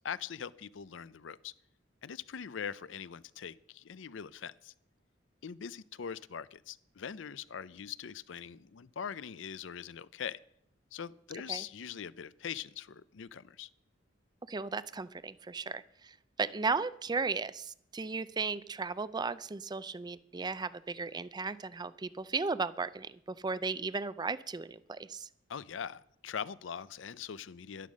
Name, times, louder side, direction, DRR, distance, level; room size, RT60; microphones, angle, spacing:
voice 1, 0.0-1.5 2.0-4.7 5.4-10.4 10.9-13.7 25.5-27.9, left 7 dB, 80° left, 18 dB, 0.5 m, -42 dB
voice 2, 14.5-25.3, right 4 dB, 20° right, 16 dB, 0.4 m, -35 dB
11.5 x 11.0 x 6.3 m, 0.71 s
head